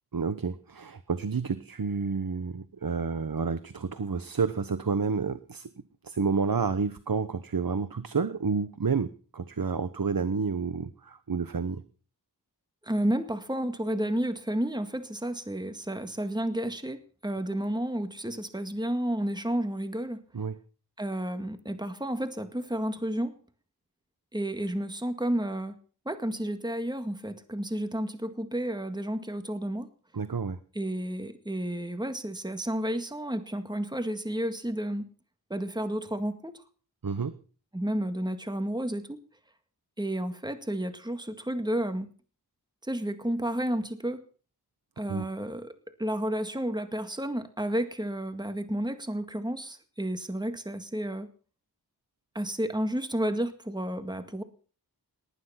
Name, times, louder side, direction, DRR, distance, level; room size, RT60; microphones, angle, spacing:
voice 1, 0.1-5.7 6.0-11.8 20.3-20.6 30.1-30.6 37.0-37.4 45.1-45.3, right 5 dB, 60° right, 13 dB, 1.1 m, -30 dB
voice 2, 12.8-20.2 21.0-23.3 24.3-25.8 26.1-29.9 30.8-35.1 35.5-36.6 37.7-39.2 40.0-42.1 42.8-44.2 45.0-45.7 46.0-51.3 52.3-54.4, right 1 dB, 10° right, 9 dB, 1.9 m, -31 dB
19.0 x 12.5 x 5.8 m, 0.40 s
wide cardioid pair, 65°, 39 cm